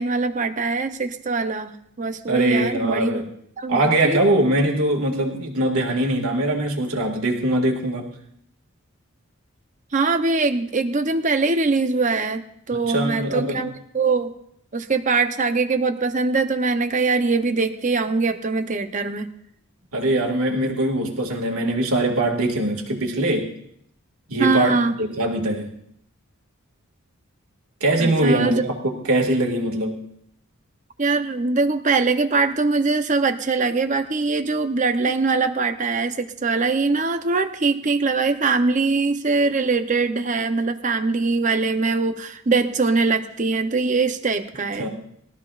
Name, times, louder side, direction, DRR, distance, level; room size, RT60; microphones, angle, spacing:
voice 1, 0.0-1.7 2.0-3.2 3.6-4.2 9.9-12.4 12.7-14.3 14.7-19.3 24.4-24.9 28.0-28.6 31.0-44.9, right 3 dB, 35° right, 7 dB, 0.7 m, -22 dB
voice 2, 2.3-3.2 3.7-8.1 12.7-13.6 19.9-23.5 24.3-25.7 27.8-30.0 44.8-44.9, right 1 dB, 80° right, 2 dB, 2.0 m, -22 dB
21.0 x 13.5 x 2.5 m, 0.70 s
head